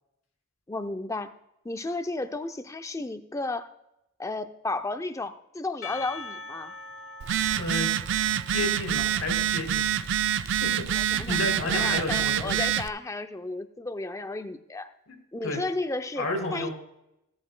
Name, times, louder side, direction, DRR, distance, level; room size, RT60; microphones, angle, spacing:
voice 1, 0.7-1.3 1.6-3.7 4.2-6.7 10.9-14.9 15.3-16.7, left 2 dB, 15° left, 9 dB, 0.4 m, -33 dB
Percussion / Church bell, 5.8-10.4, left 3 dB, 60° left, 1.0 m, -44 dB
Telephone, 7.2-12.9, right 10 dB, 55° right, 0.3 m, -26 dB
voice 2, 7.5-8.0 8.5-9.8 10.6-10.7 11.1-12.6 15.1-15.2 15.4-15.6 16.2-16.7, left 2 dB, 75° left, 2 dB, 2.8 m, -31 dB
16.0 x 11.0 x 2.2 m, 0.86 s
head